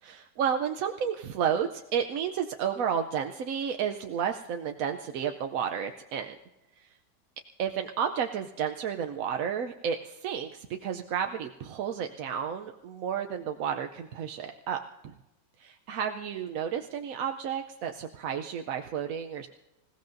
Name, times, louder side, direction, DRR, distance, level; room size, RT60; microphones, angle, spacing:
voice 1, 0.0-6.4 6.8-6.9 7.6-15.1 15.6-19.5, right 8 dB, 65° right, 5 dB, 1.0 m, -32 dB
26.5 x 16.0 x 2.6 m, 1.0 s
omnidirectional pair, 1.8 m